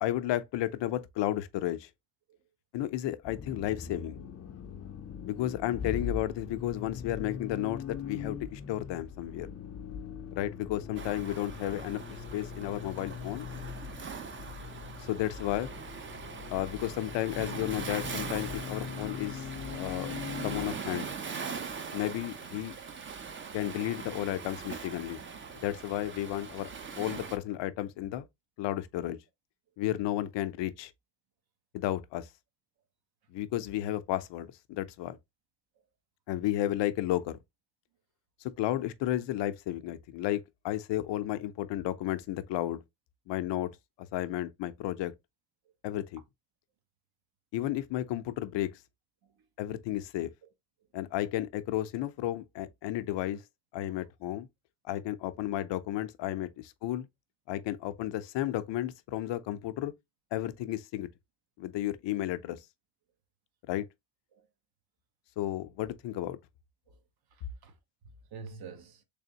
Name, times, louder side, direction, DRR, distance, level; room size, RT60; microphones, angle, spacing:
voice 1, 0.0-1.9 2.7-4.2 5.2-9.5 10.3-13.5 15.1-15.7 16.5-19.5 19.7-20.2 20.4-21.1 21.9-22.8 23.5-25.2 25.6-26.7 27.0-28.3 28.6-29.2 29.8-30.9 31.7-32.3 33.3-35.2 36.3-37.4 38.6-42.8 43.3-43.7 44.1-45.1 45.8-46.2 47.5-48.7 49.6-50.3 50.9-53.4 53.7-54.5 54.9-57.1 57.5-59.9 60.3-61.1 61.6-62.6 63.7-63.9 65.4-66.4, left 13 dB, 80° left, 0.6 m, -33 dB
Accelerating revving vroom, 3.2-20.7, left 7 dB, 35° left, 0.5 m, -41 dB
Waves surf, 11.0-27.4, right 5 dB, 30° right, 0.5 m, -41 dB
voice 2, 66.9-67.8 68.0-69.0, right 5 dB, 60° right, 1.0 m, -50 dB
3.5 x 3.4 x 2.8 m
cardioid pair, 125°, 43 cm